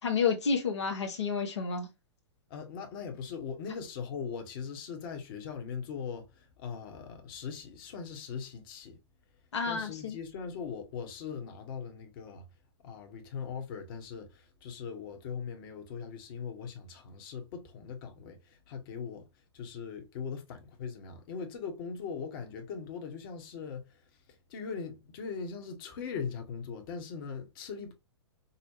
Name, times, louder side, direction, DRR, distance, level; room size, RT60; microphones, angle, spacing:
voice 1, 0.0-1.9 9.5-10.2, left 5 dB, 80° left, 1.1 m, -30 dB
voice 2, 2.5-9.0 9.7-12.4 12.8-27.9, left 6 dB, 50° left, 1.2 m, -40 dB
5.4 x 2.2 x 2.7 m
hypercardioid pair, 120°, 14 cm